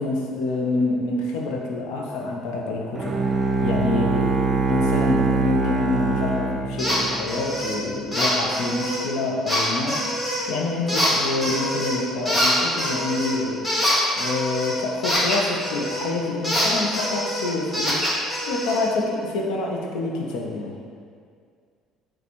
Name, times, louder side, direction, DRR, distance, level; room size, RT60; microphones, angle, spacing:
voice 1, 0.0-3.2 3.6-4.4 4.6-10.1 10.5-13.7 14.2-18.1 18.5-20.8, left 2 dB, 75° left, 0 dB, 0.4 m, -27 dB
Bowed string instrument, 2.9-7.4, right 3 dB, 30° right, 0.5 m, -23 dB
sound 1, 6.8-7.0 7.3-7.8 8.1-9.0 9.5-10.5 10.9-12.0 12.3-16.1 16.4-18.8, equal, 15° left, 1.4 m, -25 dB
4.1 x 2.2 x 2.8 m, 2.1 s
hypercardioid pair, 65°, 0 cm